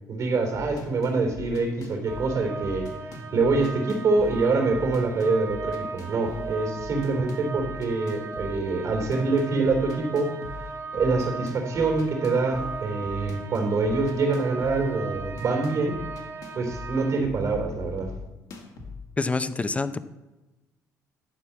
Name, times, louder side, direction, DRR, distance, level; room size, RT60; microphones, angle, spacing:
voice 1, 0.1-2.9 3.3-10.4 10.9-16.0 16.5-18.1, right 3 dB, 60° right, 3 dB, 3.1 m, -25 dB
sound 1, 0.5-19.0, left 3 dB, 70° left, 2.0 m, -41 dB
sound 2, 2.1-17.2, right 4 dB, 30° right, 0.9 m, -38 dB
voice 2, 19.2-20.0, left 3 dB, 20° left, 13 dB, 0.6 m, -26 dB
11.5 x 4.6 x 7.1 m, 1.1 s
cardioid pair, 90°, 7 cm